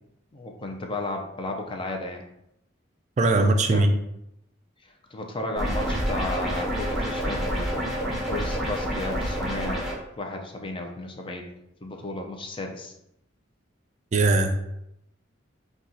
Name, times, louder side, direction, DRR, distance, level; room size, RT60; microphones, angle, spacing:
voice 1, 0.3-2.2 3.7-3.9 4.8-9.8 10.2-11.5 11.8-12.9, left 2 dB, 25° left, 3 dB, 0.5 m, -34 dB
voice 2, 3.2-3.9 14.1-14.6, right 2 dB, 40° right, 5 dB, 0.3 m, -20 dB
sound 1, 5.6-9.9, equal, ahead, 1.0 m, -28 dB
4.2 x 2.3 x 3.8 m, 0.81 s
head